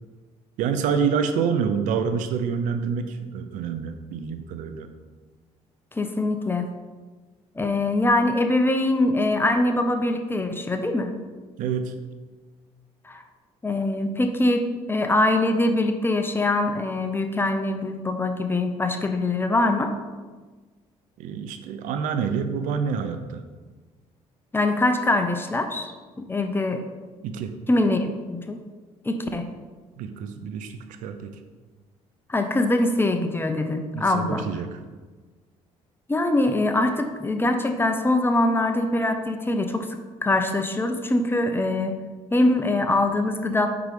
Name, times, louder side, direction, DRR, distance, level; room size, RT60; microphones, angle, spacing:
voice 1, 0.6-4.9 11.6-11.9 21.2-23.4 27.2-27.6 30.0-31.4 33.9-34.8, right 6 dB, 75° right, 9 dB, 0.6 m, -27 dB
voice 2, 5.9-6.7 7.6-11.1 13.0-13.2 13.6-19.9 24.5-25.9 26.2-26.8 27.7-28.6 29.0-29.5 32.3-34.5 36.1-42.0 42.3-43.7, left 2 dB, 15° left, 6 dB, 0.7 m, -23 dB
5.2 x 4.8 x 5.0 m, 1.4 s
supercardioid pair, 75°, 13 cm